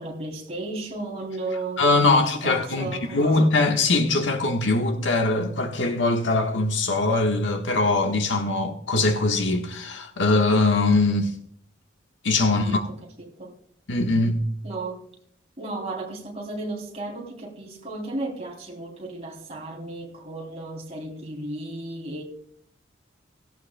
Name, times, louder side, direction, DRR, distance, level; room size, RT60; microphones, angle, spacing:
voice 1, 0.0-3.5 12.6-12.8 13.2-13.6 14.6-15.0 15.6-22.2, right 2 dB, 35° right, 3.1 m, -34 dB
voice 2, 1.8-11.3 12.2-12.9 13.9-14.4, left 2 dB, 80° left, 1.4 m, -22 dB
17.0 x 15.5 x 2.2 m
head